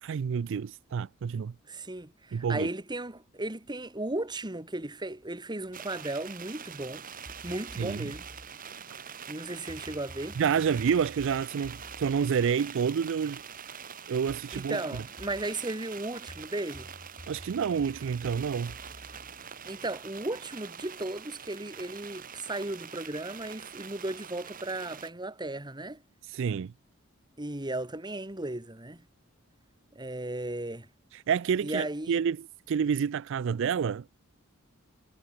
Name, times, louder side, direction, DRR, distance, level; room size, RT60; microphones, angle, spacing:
voice 1, 0.0-1.5 2.3-2.7 7.8-8.1 10.4-13.4 14.1-14.8 17.3-18.7 26.2-26.7 31.1-34.1, right 7 dB, 65° right, 0.4 m, -29 dB
voice 2, 1.7-7.1 7.4-8.3 9.3-10.4 14.5-16.9 19.7-26.0 27.4-29.0 30.0-30.9 31.6-32.2, right 2 dB, 20° right, 1.9 m, -35 dB
sound 1, 5.7-25.1, right 7 dB, 40° right, 2.0 m, -44 dB
sound 2, 7.3-8.5 9.7-13.4 14.3-15.5 16.3-20.2, equal, 25° left, 4.5 m, -51 dB
head